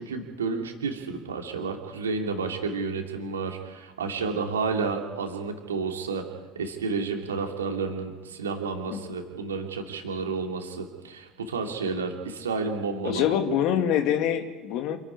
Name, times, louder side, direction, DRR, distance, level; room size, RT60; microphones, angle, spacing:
voice 1, 0.0-6.2 6.5-13.2, right 4 dB, 80° right, 3 dB, 2.9 m, -31 dB
voice 2, 13.0-15.0, left 9 dB, 55° left, 7 dB, 2.2 m, -25 dB
27.0 x 11.0 x 9.8 m, 1.4 s
figure-of-eight pair, 65°, 0 cm